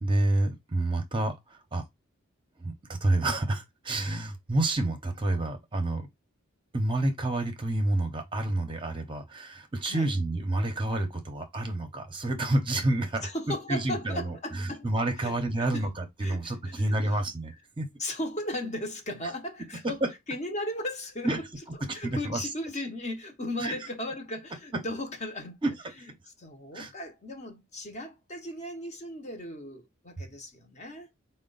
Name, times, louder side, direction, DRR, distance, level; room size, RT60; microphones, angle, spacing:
voice 1, 0.0-1.9 2.6-6.1 6.7-17.9 20.0-20.1 21.2-21.4 21.9-22.5 23.6-23.7 25.6-25.7 26.7-26.9, right 2 dB, 25° right, 0.7 m, -29 dB
voice 2, 13.2-14.9 15.2-15.3 15.6-15.9 16.2-17.1 18.0-21.3 21.8-25.6 26.4-31.1, left 1 dB, 35° left, 0.8 m, -36 dB
4.4 x 2.2 x 3.8 m
head